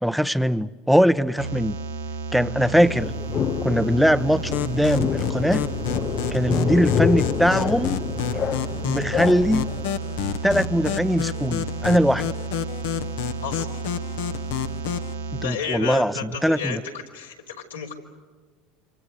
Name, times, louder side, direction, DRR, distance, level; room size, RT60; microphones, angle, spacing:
voice 1, 0.0-1.8 2.3-3.1 3.6-5.7 6.3-8.0 8.8-9.7 10.4-12.3 15.3-16.8, equal, ahead, 14 dB, 1.0 m, -21 dB
sound 1, 1.4-15.5, right 4 dB, 70° right, 1.4 m, -32 dB
sound 2, 2.9-9.9, left 8 dB, 40° left, 0.8 m, -28 dB
sound 3, 4.5-15.1, left 9 dB, 70° left, 1.4 m, -30 dB
voice 2, 15.4-17.9, left 6 dB, 85° left, -1 dB, 4.0 m, -32 dB
28.0 x 26.5 x 6.6 m, 1.5 s
hypercardioid pair, 75°, 0 cm